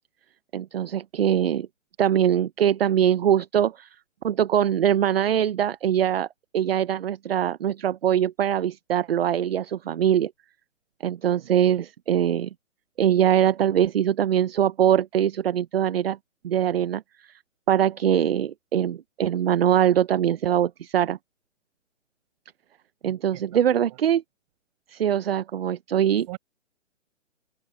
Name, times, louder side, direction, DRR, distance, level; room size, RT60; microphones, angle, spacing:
voice 1, 0.5-1.7 2.0-3.9 4.2-6.3 6.5-10.3 11.0-12.5 13.0-16.2 16.4-17.0 17.7-21.2 23.0-24.2 24.9-26.3, right 10 dB, 50° right, 0.8 m, -22 dB
voice 2, 23.0-24.0 26.3-26.4, right 20 dB, 30° right, 5.9 m, -43 dB
hypercardioid pair, 155°, 38 cm